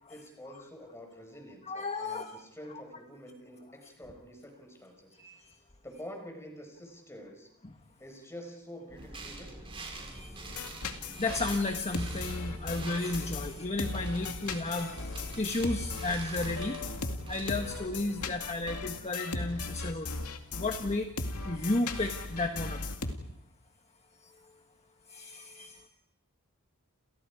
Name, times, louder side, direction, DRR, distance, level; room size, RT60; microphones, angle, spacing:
voice 1, 0.1-5.2 5.8-7.5 8.0-9.8, equal, 10° left, 4 dB, 5.3 m, -47 dB
voice 2, 1.7-2.3 5.2-5.5 10.0-16.8 17.3-20.2 20.5-21.2 21.4-22.8 24.2-24.3 25.1-25.9, left 2 dB, 30° left, 5 dB, 1.5 m, -33 dB
sound 1, 8.9-19.1, right 2 dB, 25° right, 6.1 m, -45 dB
sound 2, 10.5-23.1, left 3 dB, 85° left, 2.3 m, -37 dB
29.5 x 29.0 x 4.9 m, 0.77 s
head